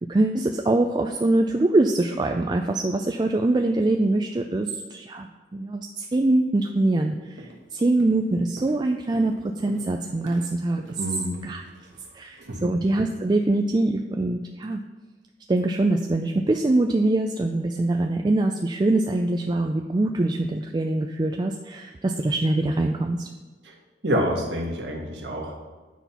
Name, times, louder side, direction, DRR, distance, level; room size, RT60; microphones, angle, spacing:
voice 1, 0.1-11.0 11.4-11.6 12.1-14.8 15.5-23.3, right 2 dB, 25° right, 4 dB, 0.3 m, -23 dB
Walk footsteps, 6.8-7.0 7.4-7.7 8.0-12.6, right 1 dB, 85° right, 1.2 m, -45 dB
voice 2, 11.0-11.4 12.5-12.7 23.6-23.7 24.0-25.6, equal, 65° right, 0 dB, 1.5 m, -27 dB
9.2 x 4.3 x 5.7 m, 1.3 s
head